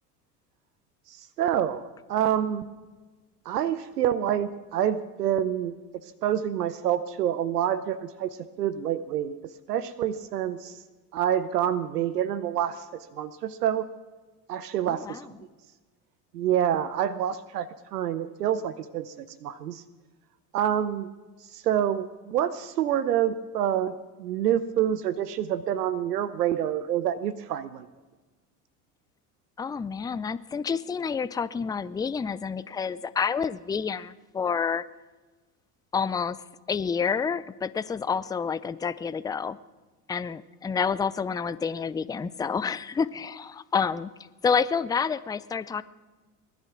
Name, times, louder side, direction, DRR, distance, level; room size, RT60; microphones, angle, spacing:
voice 1, 1.4-2.7 3.5-5.7 6.2-9.4 9.7-10.8 11.1-12.8 13.1-13.9 14.5-15.2 16.3-19.8 20.5-21.1 21.5-27.9, right 10 dB, 85° right, 14 dB, 0.8 m, -27 dB
voice 2, 14.9-15.2 29.6-34.8 35.9-36.4 36.7-39.6 40.1-44.1 44.4-45.8, left 6 dB, 10° left, 16 dB, 0.4 m, -28 dB
19.5 x 11.0 x 6.0 m, 1.3 s
hypercardioid pair, 75°, 46 cm